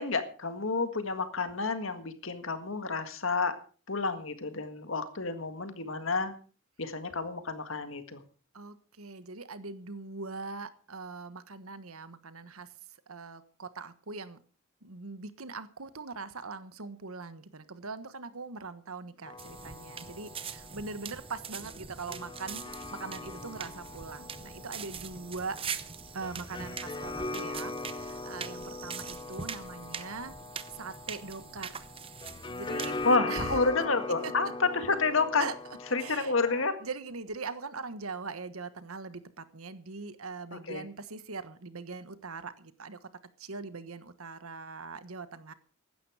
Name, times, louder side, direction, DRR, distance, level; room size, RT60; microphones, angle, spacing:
voice 1, 0.0-3.6 3.9-6.3 6.8-8.2 33.0-35.5 35.9-36.8 40.7-40.8, left 3 dB, 65° left, 9 dB, 1.8 m, -29 dB
voice 2, 8.5-12.7 13.1-14.4 14.8-25.6 26.1-30.3 30.7-31.8 32.5-33.0 33.3-33.6 34.2-34.3 35.4-35.5 36.0-36.3 36.8-43.0 43.4-45.5, right 4 dB, 85° right, 13 dB, 1.3 m, -41 dB
sound 1, 19.2-36.7, left 3 dB, 20° left, 0.6 m, -41 dB
sound 2, 19.4-33.2, right 6 dB, 25° right, 0.8 m, -43 dB
15.5 x 12.0 x 4.9 m, 0.39 s
head